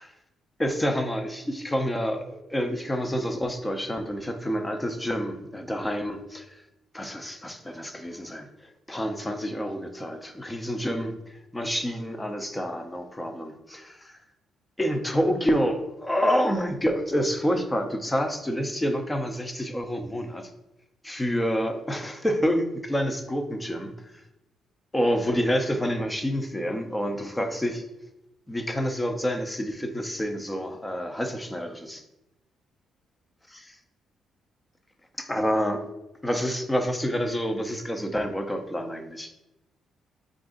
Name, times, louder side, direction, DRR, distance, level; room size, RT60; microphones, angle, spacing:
voice 1, 0.6-6.6 6.9-8.5 8.9-11.2 11.5-13.8 14.8-20.5 21.0-24.2 24.9-27.9 28.5-32.0 35.2-35.8 36.2-39.3, equal, 10° left, 5 dB, 0.5 m, -28 dB
4.4 x 2.5 x 3.7 m, 0.94 s
cardioid pair, 90°, 0 cm